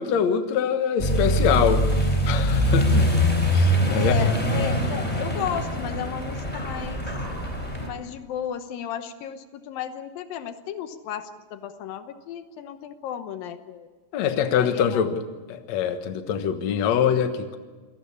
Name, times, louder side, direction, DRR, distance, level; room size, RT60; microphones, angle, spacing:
voice 1, 0.0-1.9 2.3-3.1 3.5-4.2 14.1-15.2 15.5-17.6, left 8 dB, 60° left, 8 dB, 2.4 m, -24 dB
Accelerating revving vroom, 1.0-7.9, equal, 10° left, 4.0 m, -23 dB
voice 2, 3.0-3.3 3.9-7.1 7.8-13.9 14.5-15.2, left 9 dB, 80° left, 9 dB, 2.8 m, -34 dB
27.5 x 18.5 x 7.1 m, 1.4 s
omnidirectional pair, 4.0 m